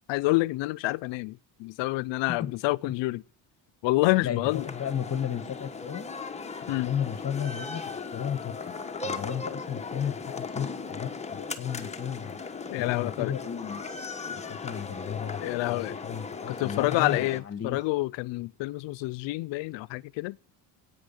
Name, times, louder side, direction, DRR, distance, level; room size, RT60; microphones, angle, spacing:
voice 1, 0.1-3.2 3.8-4.7 6.7-6.9 12.7-13.3 15.4-16.0 16.5-20.4, left 21 dB, 80° left, 0.6 m, -28 dB
voice 2, 4.2-6.1 6.6-8.6 9.0-12.4 12.8-13.8 14.3-17.8, left 8 dB, 35° left, 1.5 m, -34 dB
sound 1, 4.5-17.4, left 4 dB, 15° left, 1.2 m, -37 dB
9.9 x 9.1 x 10.0 m
cardioid pair, 135°, 44 cm